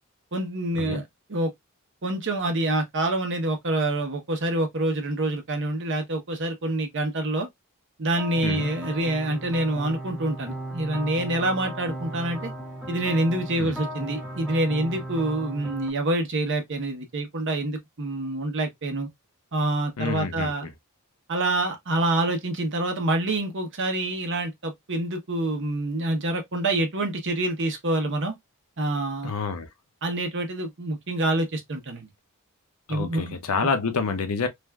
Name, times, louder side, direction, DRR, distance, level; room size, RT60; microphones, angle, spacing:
voice 1, 0.3-1.0 1.3-1.5 2.0-7.5 8.0-12.5 12.9-19.1 19.5-20.7 21.3-28.3 28.8-29.3 30.0-32.1 32.9-33.4 33.6-33.7, right 2 dB, 55° right, 0.8 m, -26 dB
sound 1, 8.2-15.9, right 1 dB, ahead, 0.5 m, -36 dB
voice 2, 20.0-20.7 29.2-29.7 32.9-34.5, left 4 dB, 80° left, 0.7 m, -28 dB
3.3 x 2.5 x 2.2 m
head